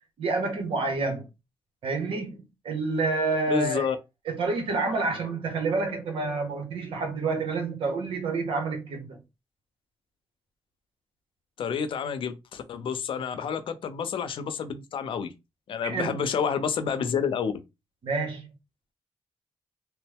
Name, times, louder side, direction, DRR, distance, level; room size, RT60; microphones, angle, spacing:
voice 1, 0.2-1.3 1.8-3.9 4.3-9.2 15.8-16.2 18.0-18.5, right 3 dB, 80° right, 1.0 m, -28 dB
voice 2, 3.5-4.0 11.6-15.3 15.7-17.5, left 7 dB, 75° left, 0.5 m, -29 dB
2.9 x 2.1 x 3.4 m
cardioid pair, 65°, 9 cm